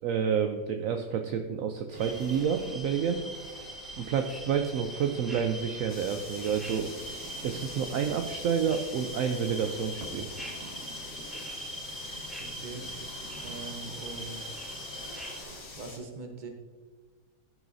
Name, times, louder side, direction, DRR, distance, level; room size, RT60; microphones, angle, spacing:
voice 1, 0.0-3.2 4.0-6.9 7.4-10.3, right 7 dB, 70° right, 6 dB, 0.8 m, -29 dB
sound 1, 1.9-15.8, right 1 dB, 50° right, 2.0 m, -47 dB
sound 2, 2.0-15.4, equal, ahead, 0.9 m, -42 dB
sound 3, 5.9-16.0, left 3 dB, 70° left, 2.1 m, -46 dB
voice 2, 12.2-12.8 13.4-14.6 15.8-16.5, right 3 dB, 35° right, 4 dB, 1.0 m, -42 dB
14.0 x 6.2 x 2.7 m, 1.4 s
omnidirectional pair, 1.8 m